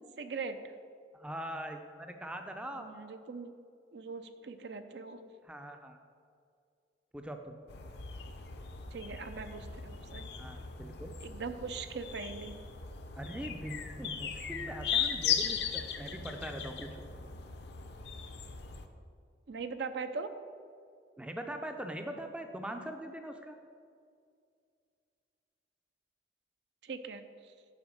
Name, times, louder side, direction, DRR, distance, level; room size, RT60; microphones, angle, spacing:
voice 1, 0.2-0.6 2.8-3.5 3.9-5.2 8.9-10.3 11.2-12.5 19.5-20.3 26.8-27.2, right 4 dB, 70° right, 9 dB, 0.5 m, -40 dB
voice 2, 1.1-2.9 5.5-6.0 7.1-7.6 10.4-11.1 13.2-17.1 21.2-23.6, right 1 dB, 5° right, 5 dB, 0.4 m, -42 dB
sound 1, 7.7-18.9, left 7 dB, 65° left, 0.6 m, -38 dB
8.4 x 4.4 x 6.3 m, 2.3 s
head